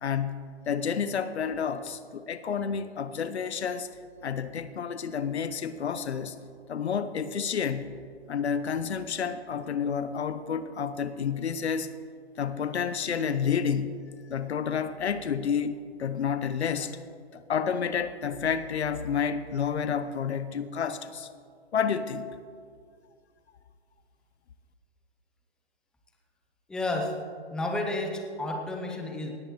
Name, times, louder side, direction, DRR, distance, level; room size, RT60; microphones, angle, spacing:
voice 1, 0.0-3.9 4.2-6.4 6.7-8.0 8.3-11.9 12.4-17.0 17.3-21.3 21.7-22.3, left 7 dB, 75° left, 13 dB, 0.9 m, -30 dB
voice 2, 26.7-27.2 27.5-29.4, left 2 dB, ahead, 2 dB, 0.7 m, -31 dB
18.5 x 14.5 x 3.1 m, 2.2 s
hypercardioid pair, 140°, 33 cm